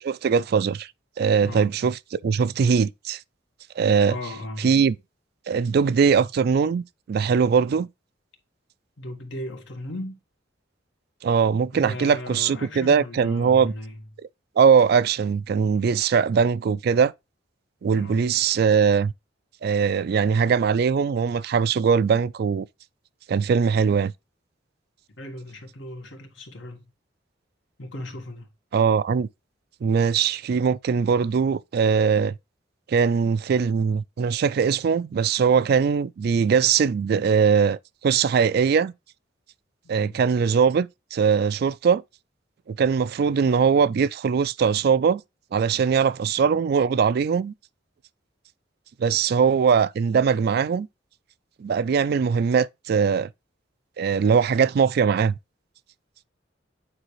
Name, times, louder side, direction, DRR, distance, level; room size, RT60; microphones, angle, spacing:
voice 1, 0.0-0.9 1.2-3.2 3.8-4.1 4.6-5.0 5.5-7.9 11.2-13.7 14.6-17.1 17.8-19.1 19.6-22.7 23.3-24.1 28.7-29.3 29.8-32.3 32.9-38.9 39.9-42.0 42.7-45.2 45.5-47.5 49.0-50.9 51.6-53.3 54.0-55.3, right 6 dB, 55° right, 0.3 m, -21 dB
voice 2, 4.1-4.8 9.0-10.2 11.7-14.0 17.9-18.3 25.2-26.9 27.8-28.5 39.9-40.2, left 1 dB, 75° left, 1.7 m, -37 dB
8.9 x 3.8 x 3.1 m
head